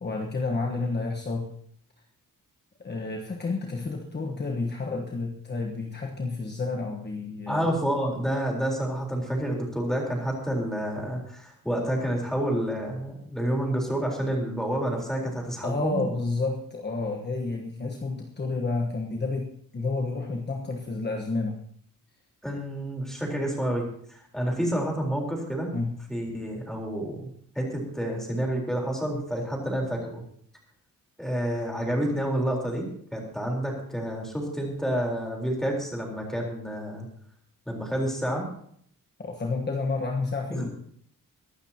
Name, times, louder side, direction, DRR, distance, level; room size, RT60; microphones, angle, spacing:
voice 1, 0.0-1.5 2.8-7.7 15.6-21.6 25.7-25.9 39.2-40.7, left 3 dB, 30° left, 1 dB, 1.3 m, -30 dB
voice 2, 7.5-16.0 22.4-25.7 26.1-30.2 31.2-37.1 37.7-38.5 40.5-40.6, right 1 dB, ahead, -1 dB, 4.0 m, -29 dB
23.0 x 12.5 x 2.9 m, 0.63 s
wide cardioid pair, 170°, 34 cm